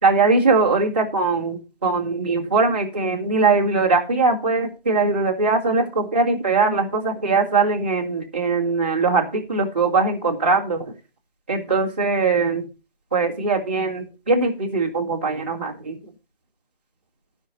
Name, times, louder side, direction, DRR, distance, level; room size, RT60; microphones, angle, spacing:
voice 1, 0.0-10.8 11.5-12.6 13.1-16.0, right 3 dB, 10° right, -5 dB, 1.9 m, -21 dB
14.0 x 6.1 x 5.3 m, 0.30 s
figure-of-eight pair, 175°, 30 cm